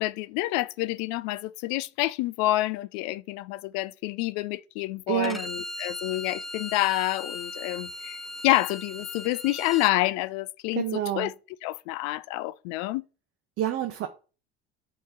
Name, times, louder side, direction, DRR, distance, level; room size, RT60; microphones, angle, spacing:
voice 1, 0.0-11.3 11.6-13.1, left 18 dB, 60° left, 0.4 m, -28 dB
voice 2, 5.1-5.4 10.7-11.3 13.6-14.1, right 12 dB, 45° right, 0.8 m, -28 dB
Bowed string instrument, 5.2-9.9, left 2 dB, ahead, 0.4 m, -38 dB
8.6 x 3.1 x 3.7 m
hypercardioid pair, 75°, 31 cm